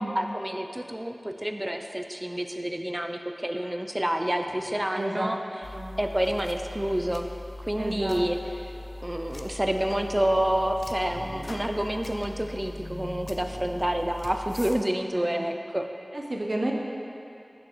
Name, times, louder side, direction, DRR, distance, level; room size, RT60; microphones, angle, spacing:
voice 1, 0.0-5.4 6.0-7.3 7.7-8.4 9.0-15.9, right 1 dB, 20° right, 5 dB, 0.4 m, -28 dB
sound 1, 4.4-6.1 6.7-7.2 7.9-13.8, equal, 35° left, 1.5 m, -47 dB
voice 2, 4.9-5.3 5.7-5.9 7.8-8.2 15.1-15.4 16.1-16.7, right 1 dB, 60° right, -1 dB, 0.7 m, -31 dB
sound 2, 5.6-14.8, left 1 dB, 75° left, 0.3 m, -41 dB
6.2 x 6.0 x 3.0 m, 2.6 s
wide cardioid pair, 45°, 0 cm